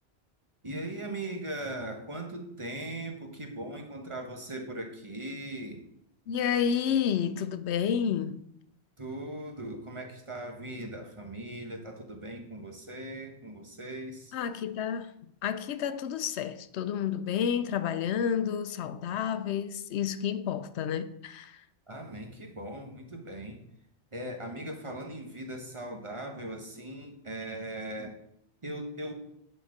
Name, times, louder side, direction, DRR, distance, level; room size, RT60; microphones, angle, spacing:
voice 1, 0.6-5.9 9.0-14.3 21.9-23.6 24.1-28.2 28.6-29.1, right 1 dB, 30° right, 1.2 m, -39 dB
voice 2, 6.3-8.4 14.3-15.1 15.4-21.6, left 8 dB, 90° left, 0.9 m, -30 dB
10.5 x 4.4 x 4.9 m
omnidirectional pair, 1.1 m